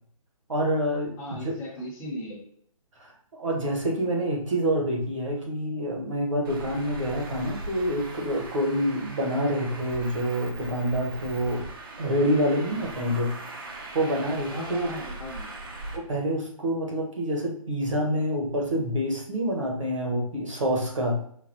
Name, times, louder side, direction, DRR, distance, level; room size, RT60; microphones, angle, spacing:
voice 1, 0.5-1.6 3.0-11.7 12.0-13.3 13.7-14.9 15.9-21.2, equal, 60° right, 0 dB, 1.2 m, -27 dB
voice 2, 1.2-2.4 13.0-13.2 14.5-15.5, left 1 dB, 10° left, -3 dB, 0.8 m, -37 dB
Traffic noise roadway noise, 6.4-16.0, right 2 dB, 40° right, 0.6 m, -40 dB
5.1 x 2.3 x 2.8 m, 0.64 s
figure-of-eight pair, 145°, 19 cm